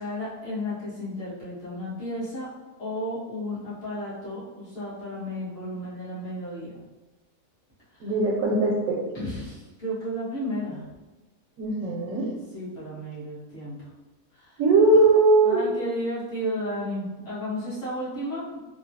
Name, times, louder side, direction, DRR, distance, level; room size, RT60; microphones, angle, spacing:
voice 1, 0.0-2.5 2.8-6.8 7.9-8.1 9.1-10.8 12.5-13.8 14.3-14.6 15.4-18.4, equal, 45° left, -11 dB, 1.7 m, -33 dB
voice 2, 8.0-9.0 11.6-12.3 14.6-15.6, right 3 dB, 75° right, -2 dB, 1.0 m, -20 dB
3.7 x 2.3 x 2.7 m, 1.2 s
omnidirectional pair, 1.6 m